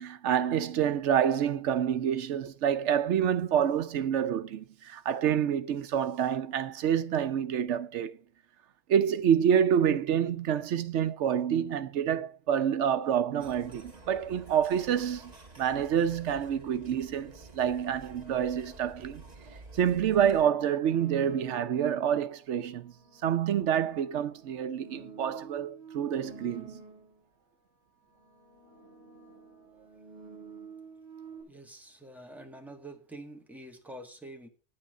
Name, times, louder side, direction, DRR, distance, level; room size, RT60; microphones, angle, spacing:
voice 1, 0.0-8.1 8.9-19.2 19.7-22.9 23.2-26.8, right 9 dB, 80° right, 1.0 m, -27 dB
sound 1, 13.4-20.4, right 2 dB, 35° right, 1.9 m, -50 dB
sound 2, 20.9-22.0 22.8-27.3 28.0-31.4, right 4 dB, 60° left, 4.8 m, -49 dB
voice 2, 31.5-34.5, right 1 dB, ahead, 1.5 m, -46 dB
9.5 x 8.8 x 4.8 m
omnidirectional pair, 1.2 m